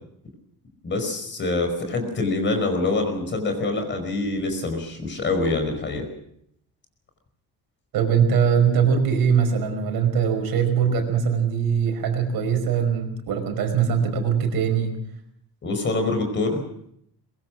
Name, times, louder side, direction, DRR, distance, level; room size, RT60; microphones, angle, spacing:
voice 1, 0.8-6.1 15.6-16.6, left 2 dB, 30° left, 5 dB, 5.1 m, -25 dB
voice 2, 7.9-14.9, right 7 dB, 65° right, 6 dB, 5.3 m, -21 dB
23.5 x 22.0 x 6.3 m, 0.72 s
cardioid pair, 175°, 38 cm